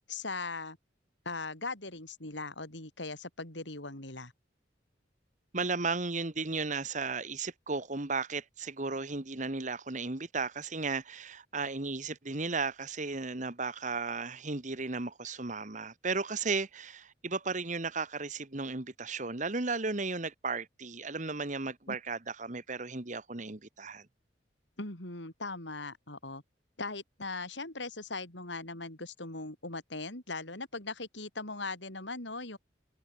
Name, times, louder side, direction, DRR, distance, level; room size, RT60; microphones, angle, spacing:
voice 1, 0.1-0.8 1.3-4.3 21.9-22.0 24.8-26.4 26.8-32.6, left 3 dB, 75° left, 5.7 m, -39 dB
voice 2, 5.5-24.1, right 4 dB, 40° right, 1.5 m, -35 dB
head